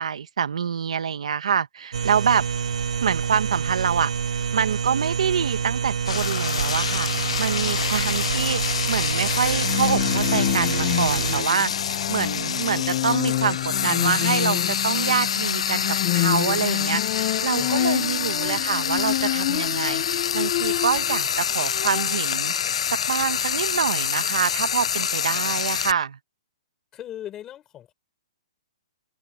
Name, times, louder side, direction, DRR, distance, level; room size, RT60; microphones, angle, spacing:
voice 1, 0.0-2.5 3.0-4.1 4.5-22.5 22.9-26.2, right 7 dB, 70° right, 1.4 m, -26 dB
sound 1, 1.9-11.4, right 7 dB, 90° right, 3.1 m, -27 dB
Frying (food), 6.1-25.9, left 8 dB, 65° left, 0.5 m, -27 dB
Bowed string instrument, 9.5-21.2 21.5-22.4, left 17 dB, 30° left, 0.7 m, -28 dB
voice 2, 18.1-18.6 26.9-27.9, left 11 dB, 15° left, 5.1 m, -39 dB
hypercardioid pair, 175°, 3 cm